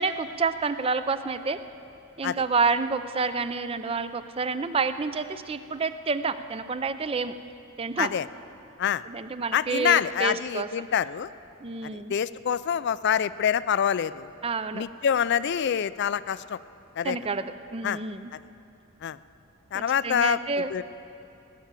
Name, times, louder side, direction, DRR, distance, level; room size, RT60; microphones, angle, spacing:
voice 1, 0.0-1.6 2.2-7.4 7.8-8.1 9.1-10.7 11.6-12.1 14.4-14.8 17.0-18.3 19.7-20.7, right 4 dB, 25° right, 12 dB, 0.4 m, -29 dB
voice 2, 9.5-11.3 11.9-14.3 14.7-16.6 17.0-17.2 17.8-18.0 19.0-19.2 19.7-20.4 20.7-20.8, left 8 dB, 50° left, 17 dB, 0.3 m, -26 dB
18.0 x 10.0 x 7.4 m, 2.7 s
head